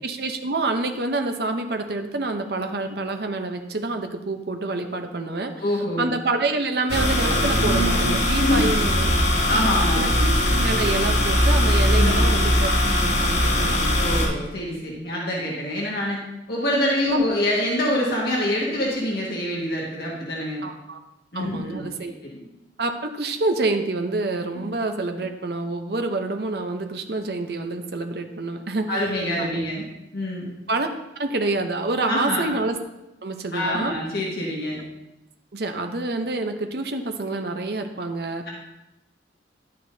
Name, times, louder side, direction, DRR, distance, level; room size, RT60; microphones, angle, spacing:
voice 1, 0.0-5.5 6.0-9.1 9.5-9.6 9.9-12.7 13.0-14.0 17.1-17.3 20.6-21.0 21.3-22.1 22.8-29.0 29.4-29.6 30.7-30.9 31.2-32.8 33.2-33.9 35.5-38.4, right 2 dB, 60° right, 5 dB, 0.8 m, -27 dB
voice 2, 5.6-6.1 8.4-8.8 9.5-10.1 12.0-12.3 14.0-16.2 16.5-20.7 21.3-22.4 28.9-29.8 30.1-30.5 32.1-32.5 33.5-34.8, left 1 dB, 60° left, -3 dB, 1.7 m, -25 dB
sound 1, 6.9-14.3, left 1 dB, 75° left, 3.2 m, -20 dB
11.0 x 9.2 x 2.7 m, 0.94 s
head